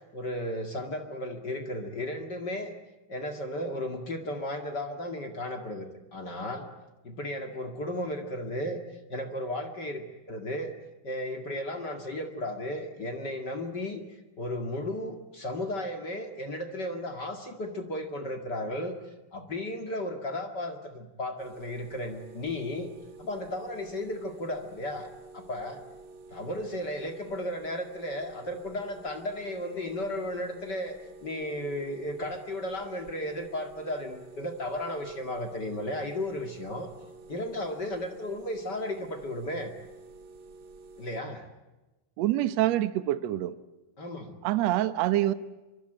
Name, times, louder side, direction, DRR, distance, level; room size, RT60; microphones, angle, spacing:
voice 1, 0.1-2.7 3.1-6.7 7.0-8.8 9.1-10.7 11.0-14.0 14.4-19.0 19.3-22.9 23.2-25.1 25.3-25.8 26.3-30.9 31.2-36.9 37.3-39.7 41.0-41.5 44.0-44.4, left 1 dB, 35° left, 5 dB, 2.0 m, -34 dB
sound 1, 21.4-41.2, right 3 dB, 50° right, 1.7 m, -49 dB
voice 2, 42.2-43.6 44.4-45.3, right 14 dB, 75° right, 12 dB, 1.5 m, -26 dB
25.0 x 24.5 x 9.1 m, 1.1 s
omnidirectional pair, 4.5 m